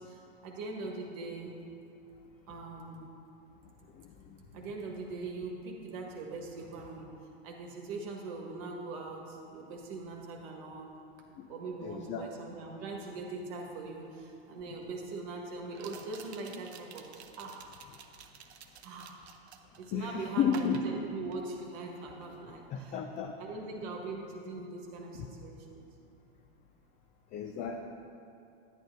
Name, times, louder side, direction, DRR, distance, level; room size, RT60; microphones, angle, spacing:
voice 1, 0.0-1.6 2.5-3.0 4.5-10.9 11.5-17.1 17.4-17.7 18.8-19.2 19.8-23.0 23.4-25.8, right 3 dB, 50° right, 0 dB, 1.3 m, -41 dB
voice 2, 11.8-12.3 19.9-20.8 22.7-23.3 25.1-25.3 27.3-27.8, left 7 dB, 25° left, 3 dB, 0.4 m, -32 dB
sound 1, 14.0-14.1 15.7-19.9 20.5-21.8 22.1-22.4, right 7 dB, 85° right, 0.7 m, -51 dB
10.0 x 8.9 x 2.6 m, 2.7 s
hypercardioid pair, 115°, 32 cm